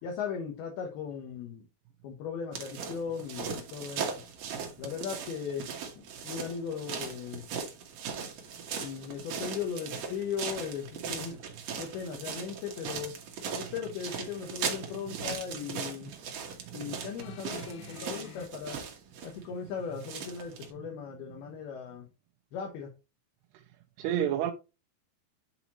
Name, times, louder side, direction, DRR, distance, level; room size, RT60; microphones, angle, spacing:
voice 1, 0.0-1.7 2.0-4.1 4.8-5.7 6.0-7.5 8.8-11.4 11.8-13.2 13.6-16.1 16.7-18.8 19.2-22.1 22.5-22.9, left 7 dB, 75° left, 2.7 m, -38 dB
sound 1, 2.5-20.7, right 6 dB, 65° right, 1.7 m, -39 dB
voice 2, 13.5-14.0 14.6-14.7 15.1-15.2 16.7-16.9 20.8-20.9 24.0-24.5, right 10 dB, 80° right, 2.6 m, -33 dB
sound 2, 17.2-18.5 19.5-19.6, left 14 dB, 90° left, 2.1 m, -47 dB
10.0 x 4.1 x 2.9 m
omnidirectional pair, 4.9 m